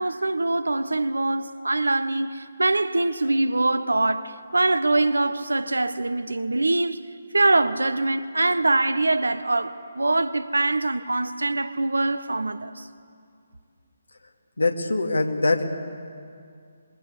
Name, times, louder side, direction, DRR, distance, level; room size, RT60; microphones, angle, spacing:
voice 1, 0.0-7.0 7.3-12.9, right 2 dB, 75° right, 1.1 m, -23 dB
voice 2, 14.6-15.6, left 2 dB, 70° left, 2.4 m, -23 dB
26.5 x 22.5 x 8.3 m
figure-of-eight pair, 140°, 0 cm